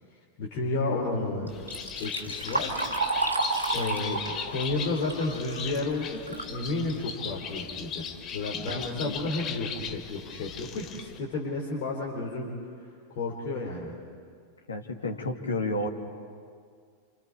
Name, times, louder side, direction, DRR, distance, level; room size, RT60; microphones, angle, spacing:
voice 1, 0.4-1.5 2.0-2.8 3.7-12.5 13.1-13.9, left 2 dB, 45° left, -3 dB, 3.8 m, -32 dB
Bird, 1.5-11.2, left 7 dB, 30° left, 1.5 m, -38 dB
Liquid, 1.5-6.6 7.0-7.1 8.0-8.1 8.5-8.8 9.4-9.5 10.0-10.1 10.5-10.8, right 3 dB, 80° right, 2.3 m, -32 dB
voice 2, 8.7-9.2 14.7-15.9, left 1 dB, 75° left, 2 dB, 2.1 m, -31 dB
29.0 x 27.5 x 4.8 m, 2.1 s
figure-of-eight pair, 90°, 0 cm